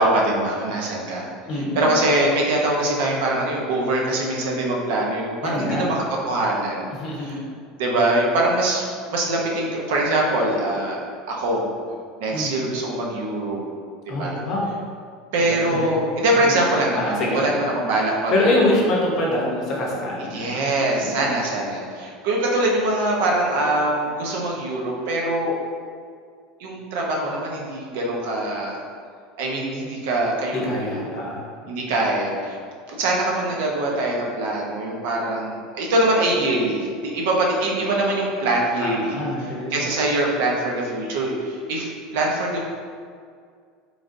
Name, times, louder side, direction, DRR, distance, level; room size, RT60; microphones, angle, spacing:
voice 1, 0.0-6.9 7.2-7.4 7.8-11.0 11.3-11.7 12.2-13.6 14.0-14.4 15.3-18.7 20.3-25.6 26.6-28.8 29.4-31.1 31.7-32.6 32.9-39.2 39.7-42.6, right 1 dB, 75° right, -2 dB, 0.7 m, -23 dB
voice 2, 1.5-1.9 5.4-5.8 6.9-7.5 12.3-12.5 14.1-14.7 15.5-15.9 16.3-16.4 17.0-17.7 18.3-20.6 21.0-21.3 30.5-31.5 38.8-39.8, left 1 dB, 35° left, -3 dB, 0.7 m, -25 dB
3.8 x 3.3 x 2.5 m, 2.1 s
cardioid pair, 175°, 0 cm